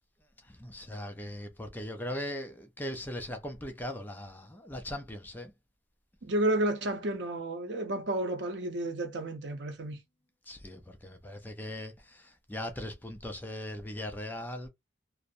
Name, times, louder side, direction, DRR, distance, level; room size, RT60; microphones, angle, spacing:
voice 1, 0.4-5.5 10.5-14.7, left 1 dB, 10° left, 0.4 m, -39 dB
voice 2, 6.2-10.0, right 1 dB, 70° right, 0.7 m, -31 dB
2.5 x 2.0 x 2.5 m
head